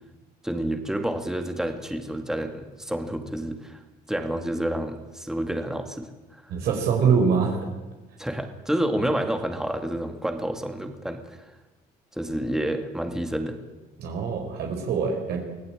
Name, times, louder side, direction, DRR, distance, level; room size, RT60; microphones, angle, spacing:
voice 1, 0.4-3.8 4.1-6.5 8.2-11.6 12.1-13.6, right 1 dB, 5° right, 6 dB, 2.2 m, -29 dB
voice 2, 6.5-7.6 14.0-15.4, right 6 dB, 75° right, 2 dB, 4.6 m, -23 dB
24.5 x 17.0 x 8.9 m, 1.1 s
cardioid pair, 110°, 17 cm